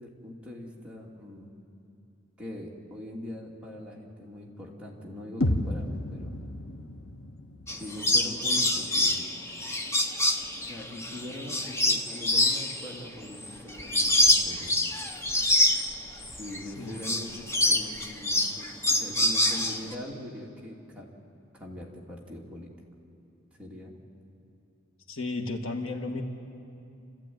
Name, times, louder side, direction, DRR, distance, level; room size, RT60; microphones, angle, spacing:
voice 1, 0.0-1.5 2.4-6.3 7.8-9.3 10.6-14.8 16.3-21.1 21.5-22.7 23.6-23.9, left 1 dB, 5° right, -4 dB, 2.7 m, -42 dB
sound 1, 5.4-9.4, left 1 dB, 85° left, 1.2 m, -33 dB
sound 2, 7.7-16.6 16.9-19.9, left 1 dB, 15° left, 1.1 m, -26 dB
voice 2, 25.1-26.2, left 3 dB, 70° left, 3 dB, 1.8 m, -33 dB
29.0 x 14.0 x 9.4 m, 2.7 s
head